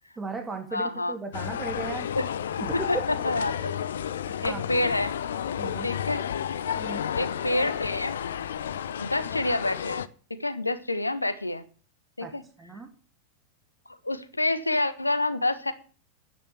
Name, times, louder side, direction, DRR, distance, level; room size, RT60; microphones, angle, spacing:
voice 1, 0.2-2.1 2.6-2.9 4.3-4.7 5.6-5.9 6.8-7.0 12.2-12.9, right 3 dB, 15° right, 4 dB, 2.8 m, -36 dB
voice 2, 0.7-1.1 2.1-2.3 2.7-3.0 3.2-3.7 4.4-5.1 5.8-6.3 7.1-8.2 9.0-11.6 12.2-12.4 14.0-15.7, left 2 dB, 85° left, 13 dB, 1.3 m, -28 dB
sound 1, 1.3-10.1, left 9 dB, 65° left, 0.7 m, -32 dB
9.9 x 9.7 x 7.7 m, 0.40 s
figure-of-eight pair, 90°, 0 cm